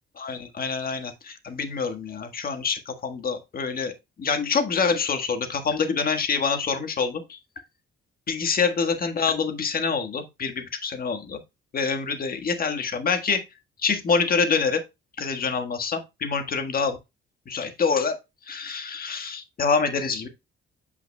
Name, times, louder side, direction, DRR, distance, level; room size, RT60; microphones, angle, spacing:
voice 1, 0.2-3.9 4.2-7.4 8.3-11.4 11.7-13.4 13.8-14.8 15.2-17.0 17.5-18.2 18.5-20.3, left 5 dB, 50° left, 1.5 m, -26 dB
8.1 x 5.8 x 2.3 m
cardioid pair, 90°, 20 cm